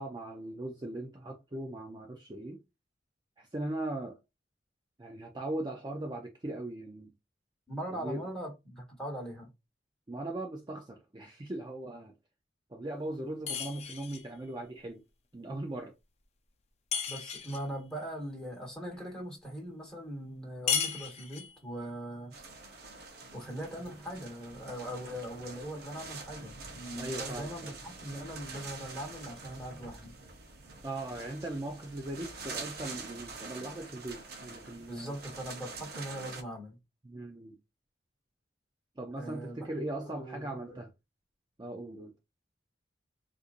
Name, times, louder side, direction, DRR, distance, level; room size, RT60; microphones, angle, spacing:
voice 1, 0.0-2.6 3.4-4.2 5.0-7.1 7.9-8.2 10.1-12.1 12.7-15.0 15.3-15.9 27.0-27.7 30.8-35.1 37.0-37.6 39.0-40.9 41.6-42.1, right 1 dB, 25° right, 0.5 m, -39 dB
voice 2, 7.7-9.5 17.1-22.3 23.3-30.2 34.9-36.8 39.2-40.8, right 1 dB, 5° left, 1.3 m, -41 dB
sound 1, 13.5-14.3 16.9-17.7 20.7-21.6, left 7 dB, 35° left, 0.5 m, -34 dB
sound 2, 22.3-36.4, right 4 dB, 55° right, 0.8 m, -45 dB
4.3 x 2.5 x 2.5 m
head